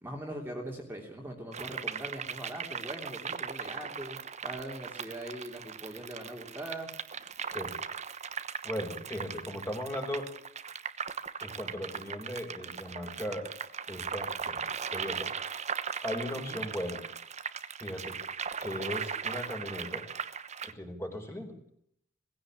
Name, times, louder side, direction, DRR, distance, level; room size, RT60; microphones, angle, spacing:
voice 1, 0.0-6.9 16.4-16.6, right 1 dB, 10° right, 0 dB, 3.2 m, -41 dB
sound 1, 1.5-20.7, right 6 dB, 35° right, 1.2 m, -38 dB
voice 2, 8.6-10.3 11.4-13.5 13.9-15.3 16.0-17.0 17.8-18.2 18.6-20.1 20.6-21.6, left 1 dB, 15° left, 3 dB, 4.9 m, -37 dB
20.5 x 16.0 x 8.9 m, 0.70 s
head